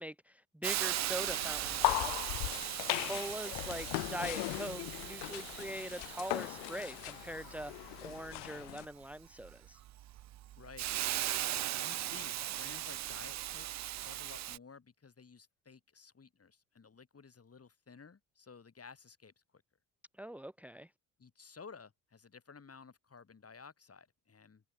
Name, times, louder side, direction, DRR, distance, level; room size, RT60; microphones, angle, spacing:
voice 1, 0.0-2.5 3.0-9.8 20.2-20.9, equal, 5° right, 1.8 m, -43 dB
Hiss, 0.6-14.6, right 13 dB, 40° right, 0.5 m, -39 dB
sound 1, 1.2-8.9, left 28 dB, 70° left, 0.5 m, -38 dB
voice 2, 2.9-3.3 10.6-10.9 11.8-19.6 21.2-24.7, left 5 dB, 35° left, 6.4 m, -55 dB
hypercardioid pair, 60°, 42 cm